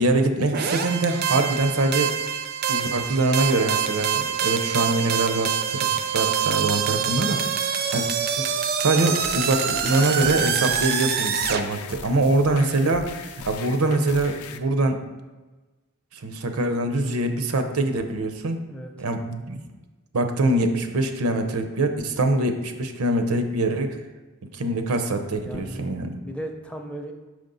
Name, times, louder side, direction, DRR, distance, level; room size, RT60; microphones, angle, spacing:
voice 1, 0.0-2.2 2.7-5.9 6.1-7.5 7.9-8.1 8.4-8.5 8.8-13.1 13.5-15.0 16.1-18.6 19.0-19.6 20.1-24.0 24.5-26.2, right 2 dB, 85° right, 7 dB, 0.7 m, -23 dB
sound 1, 0.5-11.6, right 7 dB, 45° right, 0.5 m, -25 dB
sound 2, 9.2-14.6, left 6 dB, 80° left, 0.5 m, -40 dB
voice 2, 18.7-19.1 25.3-25.8 26.2-27.1, right 1 dB, 5° left, 3 dB, 0.5 m, -36 dB
6.1 x 5.1 x 3.9 m, 1.2 s
head